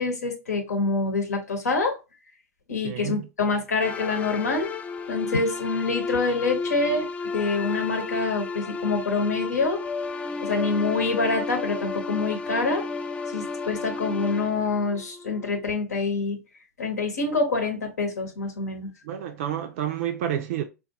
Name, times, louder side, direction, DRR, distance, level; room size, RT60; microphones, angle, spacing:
voice 1, 0.0-2.0 2.7-4.7 5.1-7.1 7.3-9.8 10.4-12.9 13.3-16.4 16.8-18.9, left 3 dB, 80° left, 0.9 m, -26 dB
voice 2, 2.8-3.3 19.0-20.6, right 10 dB, 55° right, 0.4 m, -29 dB
sound 1, 3.8-15.6, left 4 dB, 15° left, 0.3 m, -33 dB
3.6 x 2.3 x 2.6 m
hypercardioid pair, 105°, 9 cm